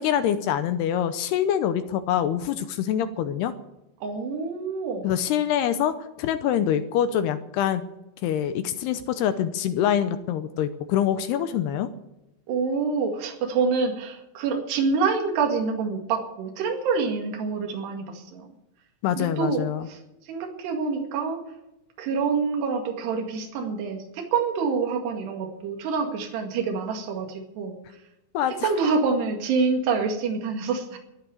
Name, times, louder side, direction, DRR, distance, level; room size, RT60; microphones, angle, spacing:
voice 1, 0.0-3.5 5.0-5.9 6.2-7.8 8.2-11.9 19.0-19.9 28.3-28.7, left 10 dB, 80° left, 10 dB, 2.5 m, -25 dB
voice 2, 4.0-5.1 12.5-18.5 19.2-20.0 20.3-21.4 22.0-27.8 28.6-31.0, right 5 dB, 65° right, 2 dB, 4.1 m, -26 dB
14.5 x 9.8 x 9.7 m, 0.91 s
omnidirectional pair, 5.3 m